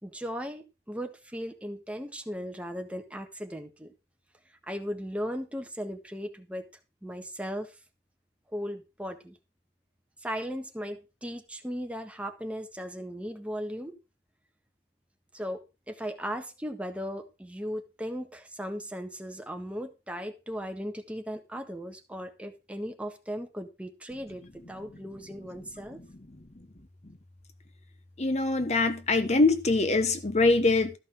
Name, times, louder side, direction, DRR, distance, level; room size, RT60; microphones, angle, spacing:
voice 1, 0.0-3.9 4.6-6.6 7.0-7.8 8.5-9.4 10.2-14.0 15.3-26.0, equal, 5° right, 1.5 m, -37 dB
voice 2, 28.2-31.0, left 3 dB, 40° left, 1.0 m, -23 dB
13.5 x 5.5 x 6.2 m
head